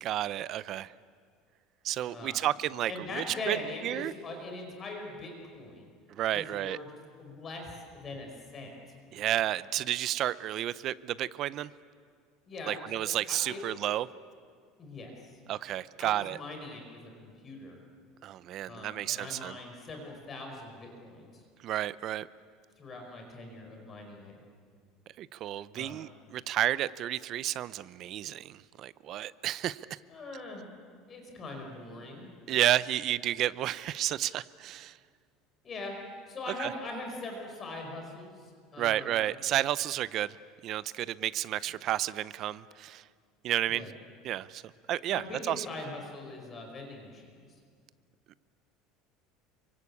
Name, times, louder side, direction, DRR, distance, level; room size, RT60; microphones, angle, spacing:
voice 1, 0.0-0.9 1.8-3.6 3.8-4.1 6.1-6.8 9.1-11.7 12.7-14.1 15.5-16.4 18.2-19.6 21.6-22.3 25.2-30.0 32.5-35.0 36.6-36.7 38.8-40.4 40.6-43.0 43.4-43.8 44.2-44.6 44.9-45.6, right 12 dB, 40° right, 17 dB, 0.6 m, -31 dB
voice 2, 2.1-2.5 2.9-5.9 6.3-6.9 7.2-8.7 12.5-13.6 14.8-15.4 16.0-17.8 18.7-21.4 22.8-24.3 25.7-26.0 30.1-30.7 31.1-32.3 35.6-36.0 36.3-39.3 43.7-43.9 45.1-47.4, left 2 dB, 25° left, 3 dB, 4.9 m, -42 dB
27.5 x 24.5 x 8.5 m, 2.1 s
cardioid pair, 160°, 0 cm